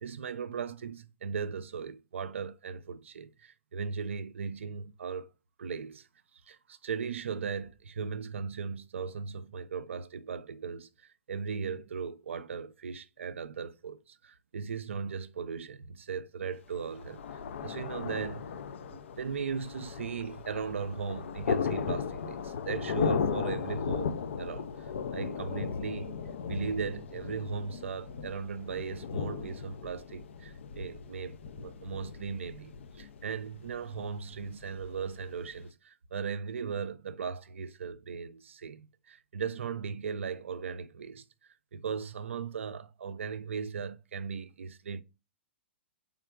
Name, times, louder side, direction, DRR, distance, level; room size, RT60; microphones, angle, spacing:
voice 1, 0.0-5.3 5.6-6.1 6.5-17.2 17.6-18.5 18.9-24.1 24.4-26.2 26.5-41.2 41.7-45.0, right 6 dB, 85° right, 0.4 m, -37 dB
Thunder, 16.7-35.6, left 6 dB, 75° left, 0.4 m, -37 dB
3.5 x 3.5 x 2.3 m
hypercardioid pair, 120°, 7 cm